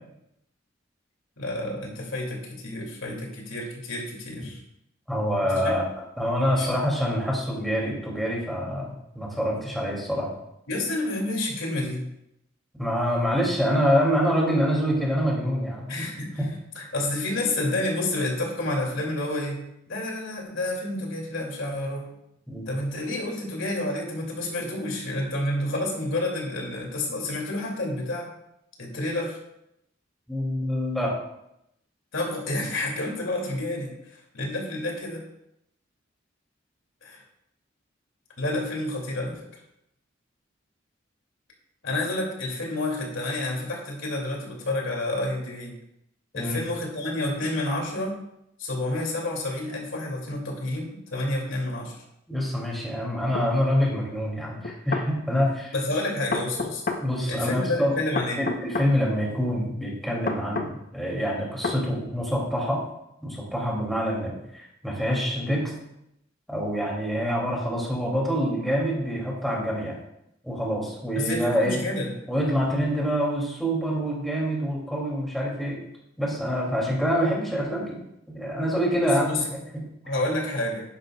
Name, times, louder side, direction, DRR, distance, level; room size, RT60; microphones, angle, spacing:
voice 1, 1.4-4.6 5.5-5.7 6.6-6.7 10.7-12.1 15.9-16.4 16.8-22.1 22.7-28.3 28.8-29.4 32.1-35.2 37.0-37.2 38.4-39.5 41.8-45.7 46.3-48.2 48.6-52.0 55.7-56.8 57.3-58.5 71.1-72.1 79.0-79.4 80.0-80.8, left 1 dB, 85° left, 0 dB, 2.6 m, -29 dB
voice 2, 5.1-5.8 6.2-10.3 12.7-15.9 16.4-16.5 22.5-22.7 30.3-31.1 46.3-46.6 52.3-55.7 57.0-58.0 58.4-62.8 63.2-65.7 66.5-69.9 70.4-71.8 72.3-75.8 76.2-78.0 78.3-79.9, equal, ahead, -4 dB, 2.6 m, -26 dB
sound 1, 53.3-53.5 54.6-55.1 56.3-57.0 58.2-58.9 60.3-60.7 61.6-61.8, left 3 dB, 45° left, 0.9 m, -28 dB
11.5 x 10.0 x 2.4 m, 0.81 s
head